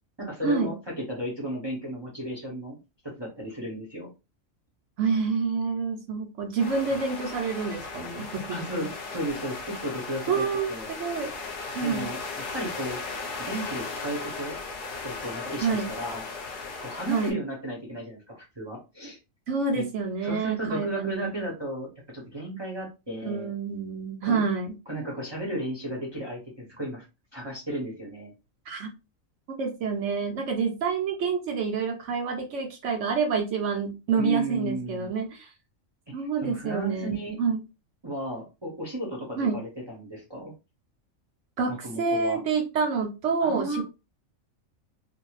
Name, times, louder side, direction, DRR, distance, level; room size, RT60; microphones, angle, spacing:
voice 1, 0.2-2.8 3.0-4.1 6.9-7.0 8.5-10.9 11.8-12.2 12.5-13.0 13.4-14.6 15.0-16.2 16.8-19.2 19.7-19.8 20.2-23.5 24.2-24.4 24.9-27.0 27.3-28.3 34.2-35.1 36.2-37.4 38.0-40.5 41.7-42.4 43.4-43.8, right 1 dB, 25° right, -4 dB, 0.7 m, -34 dB
voice 2, 5.0-8.9 10.3-11.3 11.7-12.1 15.6-15.9 17.1-17.4 19.5-21.5 23.2-24.7 28.7-28.9 29.6-35.5 36.1-37.6 39.4-39.6 41.6-43.8, right 5 dB, 70° right, 3 dB, 0.9 m, -28 dB
sound 1, 6.6-17.3, left 4 dB, 45° left, 0.8 m, -37 dB
2.6 x 2.2 x 3.0 m, 0.27 s
omnidirectional pair, 1.4 m